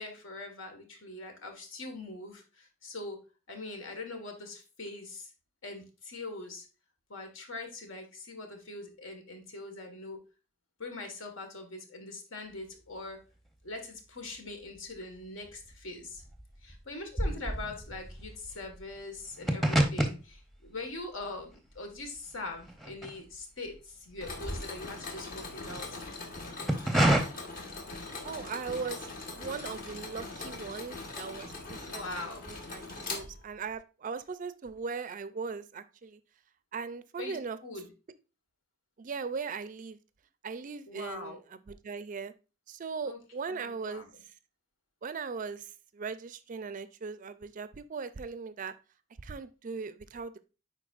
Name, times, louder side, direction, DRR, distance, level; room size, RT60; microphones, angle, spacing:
voice 1, 0.0-3.2 3.5-5.3 5.6-6.7 7.1-10.2 10.8-13.2 13.6-16.2 16.6-26.0 31.8-32.4 37.2-37.4 37.6-37.9 40.9-41.4 43.0-43.2 43.5-44.2, left 2 dB, 75° left, 4 dB, 1.5 m, -42 dB
sound 1, 14.4-15.1 15.4-23.7 24.0-25.8 26.4-27.2, right 1 dB, ahead, 0.7 m, -31 dB
Mechanisms, 24.2-33.8, left 3 dB, 45° left, 1.3 m, -41 dB
voice 2, 28.2-32.0 32.5-36.2 36.7-37.6 39.0-40.0 40.4-41.4 41.7-42.3 42.7-44.1 45.0-48.7 49.2-50.4, right 5 dB, 40° right, 14 dB, 0.4 m, -39 dB
10.0 x 4.2 x 2.4 m, 0.31 s
head